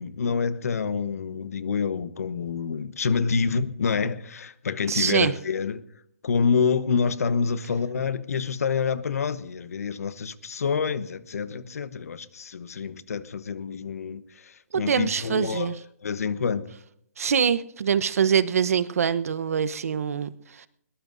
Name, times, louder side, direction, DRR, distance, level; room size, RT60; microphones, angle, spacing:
voice 1, 0.0-5.8 6.2-15.7 16.0-16.7, left 5 dB, 75° left, 1.1 m, -27 dB
voice 2, 4.9-5.3 14.7-15.7 17.2-20.7, right 7 dB, 70° right, 0.9 m, -24 dB
21.5 x 20.0 x 2.7 m
hypercardioid pair, 150°, 8 cm